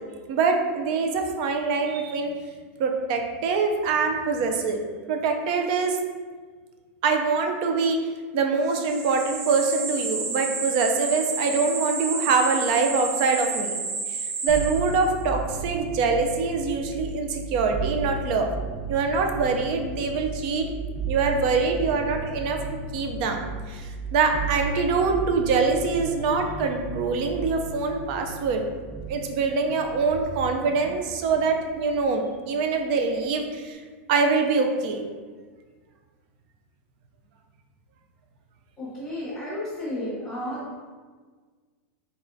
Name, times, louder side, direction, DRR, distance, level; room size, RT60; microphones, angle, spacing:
voice 1, 0.3-2.3 2.8-4.8 5.1-6.0 7.0-13.8 14.1-18.5 18.9-20.6 21.1-22.6 22.9-28.7 29.1-33.8 34.1-35.1, right 4 dB, 40° right, 4 dB, 0.5 m, -24 dB
sound 1, 8.7-15.2, right 4 dB, 80° right, 0.7 m, -31 dB
sound 2, 14.5-31.9 32.2-33.0, right 3 dB, 10° right, 1.1 m, -35 dB
voice 2, 38.8-40.7, left 1 dB, 10° left, -9 dB, 1.0 m, -32 dB
4.1 x 3.5 x 2.6 m, 1.5 s
supercardioid pair, 170°, 7 cm